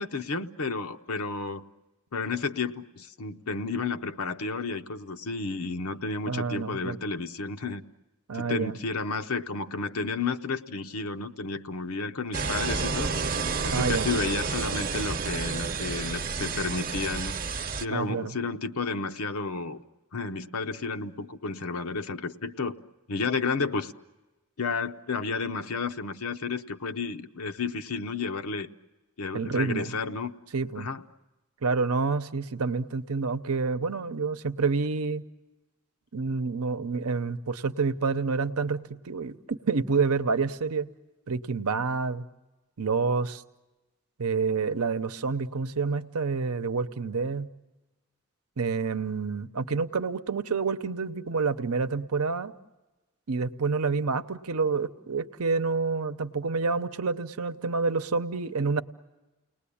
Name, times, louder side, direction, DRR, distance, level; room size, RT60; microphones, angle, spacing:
voice 1, 0.0-1.6 2.1-7.8 8.3-13.1 13.6-17.4 17.8-19.8 20.1-22.8 23.1-23.9 24.6-28.7 29.2-30.3 30.8-31.0, left 4 dB, 85° left, 8 dB, 0.8 m, -32 dB
voice 2, 6.3-7.0 8.3-8.8 13.7-14.1 17.9-18.4 29.3-29.9 30.5-30.9 31.6-35.2 36.1-40.9 41.3-42.3 42.8-43.4 44.2-47.5 48.6-52.5 53.3-58.8, right 4 dB, 90° right, 11 dB, 0.8 m, -28 dB
Walking Thru, 12.3-17.8, right 5 dB, 40° right, 0.8 m, -30 dB
30.0 x 19.5 x 8.5 m, 1.1 s
head